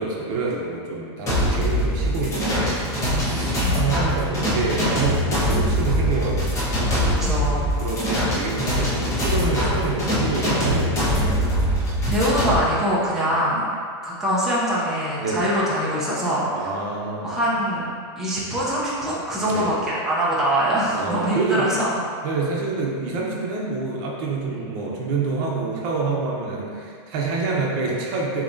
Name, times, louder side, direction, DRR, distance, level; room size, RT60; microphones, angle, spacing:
voice 1, 0.0-2.8 3.1-7.0 7.5-11.4 13.3-13.4 15.2-15.5 16.6-17.4 19.5-19.7 20.9-21.6 22.2-28.4, right 3 dB, 45° right, -3 dB, 0.8 m, -27 dB
sound 1, 1.3-12.6, equal, 20° left, 1.0 m, -23 dB
voice 2, 3.1-4.0 7.1-7.7 12.1-13.7 14.0-16.7 17.2-17.9 18.2-22.0 24.5-24.6, equal, 5° right, -9 dB, 0.7 m, -24 dB
6.7 x 3.0 x 2.7 m, 2.1 s
supercardioid pair, 150°, 15 cm